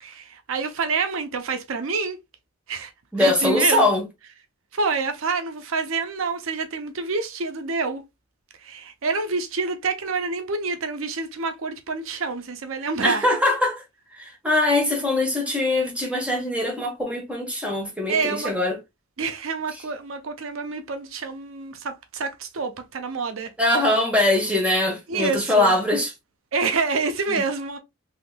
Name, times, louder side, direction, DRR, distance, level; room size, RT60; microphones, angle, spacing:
voice 1, 0.0-2.2 2.7-2.9 3.2-3.9 4.7-8.0 8.6-13.3 18.1-18.5 19.2-23.5 25.1-25.8 26.5-27.8, right 4 dB, 75° right, 0.6 m, -27 dB
voice 2, 3.1-4.0 13.0-13.8 14.1-18.8 23.6-26.1, left 1 dB, 5° right, 1.2 m, -22 dB
3.5 x 3.0 x 2.2 m
head